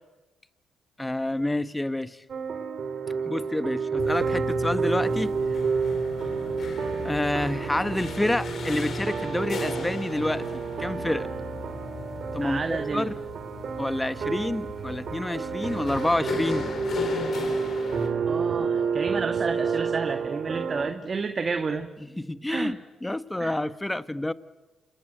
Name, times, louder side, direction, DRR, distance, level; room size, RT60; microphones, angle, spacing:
voice 1, 1.0-2.2 3.3-5.6 7.0-11.3 12.3-13.2 13.8-16.7 22.0-24.3, left 1 dB, 10° left, 14 dB, 1.1 m, -28 dB
sound 1, 2.3-20.9, right 5 dB, 55° right, 3.2 m, -30 dB
sound 2, 4.0-18.1, left 4 dB, 55° left, 4.1 m, -36 dB
voice 2, 12.4-13.1 18.3-21.9 22.5-22.7 23.4-23.5, right 4 dB, 35° right, 7 dB, 1.7 m, -30 dB
28.5 x 23.0 x 9.1 m, 1.2 s
cardioid pair, 90°, 0 cm